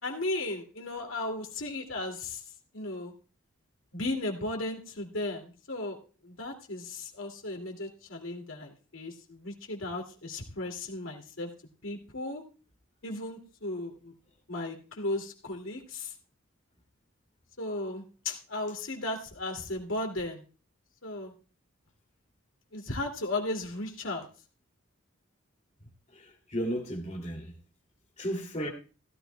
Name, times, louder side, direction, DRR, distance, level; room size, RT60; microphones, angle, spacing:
voice 1, 0.0-2.4 2.7-3.1 3.9-6.0 6.2-11.5 11.8-12.4 13.0-14.1 14.5-16.1 17.6-20.4 21.0-21.3 22.7-24.3, left 2 dB, 75° left, 2.4 m, -35 dB
voice 2, 26.1-27.5 28.2-28.7, equal, 35° left, 2.5 m, -34 dB
16.0 x 13.0 x 2.2 m
head